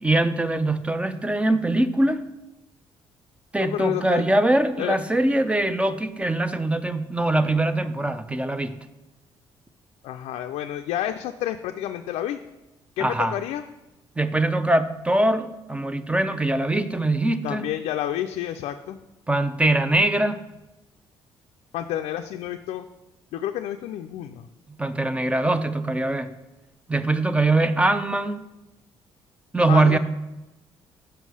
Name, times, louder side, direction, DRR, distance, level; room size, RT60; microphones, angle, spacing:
voice 1, 0.0-2.3 3.5-8.8 13.0-13.4 14.2-17.7 19.3-20.4 24.8-26.3 26.9-28.4 29.5-30.0, right 2 dB, 10° right, 11 dB, 0.6 m, -22 dB
voice 2, 3.6-4.2 4.8-5.0 10.0-12.4 13.0-13.6 17.4-19.0 21.7-22.9 23.3-24.5 29.7-30.0, left 11 dB, 80° left, 5 dB, 0.4 m, -29 dB
5.7 x 5.4 x 6.2 m, 0.99 s
cardioid pair, 80°, 10 cm